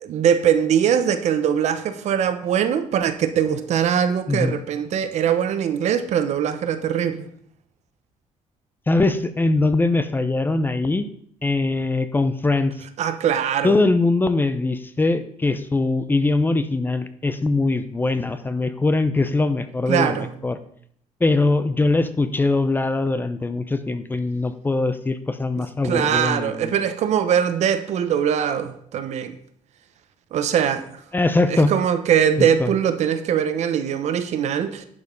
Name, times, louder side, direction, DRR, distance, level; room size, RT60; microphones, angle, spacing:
voice 1, 0.0-7.3 13.0-13.8 19.9-20.3 25.8-29.3 30.3-30.8 31.5-34.8, right 8 dB, 65° right, 10 dB, 1.0 m, -21 dB
voice 2, 8.9-11.1 11.4-12.7 13.6-20.6 21.2-26.9 31.1-31.7 32.4-32.7, left 2 dB, 15° left, 11 dB, 0.6 m, -22 dB
11.0 x 5.3 x 5.3 m, 0.65 s
cardioid pair, 130°, 13 cm